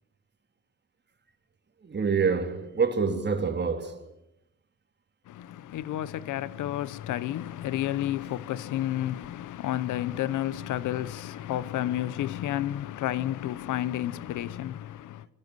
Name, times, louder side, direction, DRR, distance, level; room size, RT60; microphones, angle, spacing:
voice 1, 1.8-4.1, right 5 dB, 35° right, 3.5 m, -27 dB
voice 2, 5.3-15.3, left 13 dB, 80° left, 1.0 m, -31 dB
25.5 x 19.5 x 8.0 m
cardioid pair, 90°, 30 cm